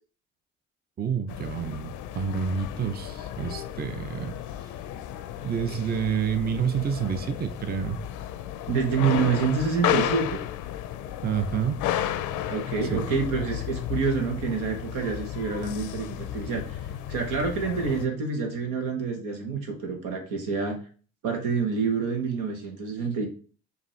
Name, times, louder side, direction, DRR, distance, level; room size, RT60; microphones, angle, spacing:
voice 1, 1.0-4.3 5.4-8.0 11.2-11.8 12.9-13.1, right 7 dB, 30° right, 10 dB, 0.5 m, -28 dB
sound 1, 1.3-18.1, left 11 dB, 85° left, 0.5 m, -33 dB
voice 2, 8.7-10.4 12.5-20.8 21.2-23.3, right 5 dB, 85° right, 3 dB, 1.1 m, -27 dB
4.9 x 2.7 x 3.1 m, 0.41 s
supercardioid pair, 60°, 30 cm